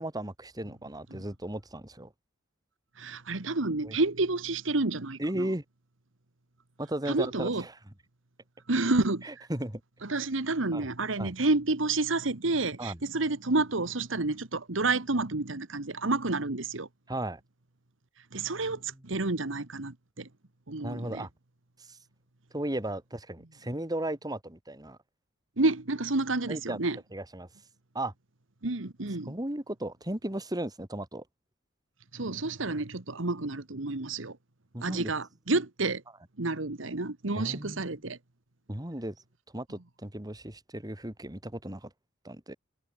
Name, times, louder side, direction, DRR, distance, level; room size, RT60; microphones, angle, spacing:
voice 1, 0.0-2.1 3.8-4.0 5.2-5.6 6.8-7.7 9.2-9.8 10.7-10.9 11.2-11.3 12.8-13.0 17.1-17.4 20.8-21.3 21.9-22.0 22.5-25.0 26.5-26.8 27.1-27.5 27.9-28.1 29.3-31.2 34.7-35.1 37.4-37.8 38.7-39.1 39.5-41.9 42.2-42.5, right 1 dB, 20° right, 2.7 m, -35 dB
voice 2, 3.0-5.5 7.1-7.6 8.7-9.3 10.0-16.9 18.3-20.3 20.7-21.3 25.6-27.0 28.6-29.3 32.1-34.4 34.8-36.0 36.4-38.2, right 2 dB, 70° right, 1.6 m, -29 dB
head